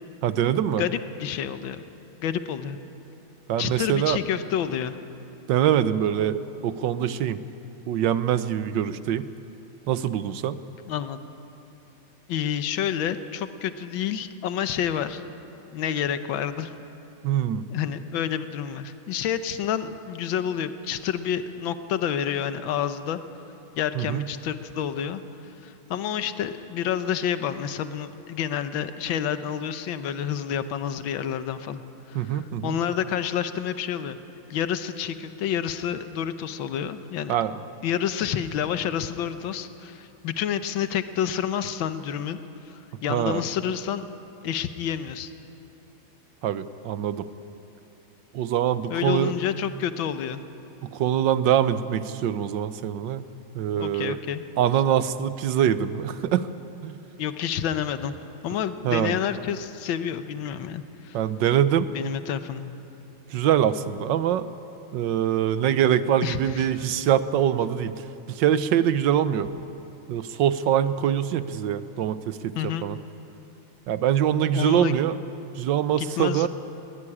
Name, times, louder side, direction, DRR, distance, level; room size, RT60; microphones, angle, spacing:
voice 1, 0.2-0.8 3.5-4.2 5.5-7.4 7.9-9.3 9.9-10.6 17.2-17.6 23.9-24.2 32.1-32.7 37.3-37.6 43.1-43.4 46.4-47.3 48.3-49.3 50.9-53.2 53.5-54.2 54.6-56.5 56.8-56.9 58.8-59.2 61.1-61.9 63.3-64.5 64.9-69.5 70.1-72.5 72.8-73.0 73.9-75.1 75.6-76.5, right 10 dB, 70° right, 13 dB, 1.4 m, -24 dB
voice 2, 0.8-1.8 2.2-2.8 3.6-5.0 10.9-11.2 12.3-15.2 15.7-16.7 17.7-23.2 23.8-25.2 25.6-34.2 34.5-37.3 37.8-44.0 44.4-45.3 48.9-50.4 53.8-54.4 57.2-58.2 58.4-61.2 61.9-62.7 66.2-66.8 72.5-72.9 74.5-75.0 76.0-76.5, left 9 dB, 75° left, 10 dB, 1.7 m, -29 dB
21.5 x 18.0 x 9.9 m, 2.8 s
omnidirectional pair, 2.2 m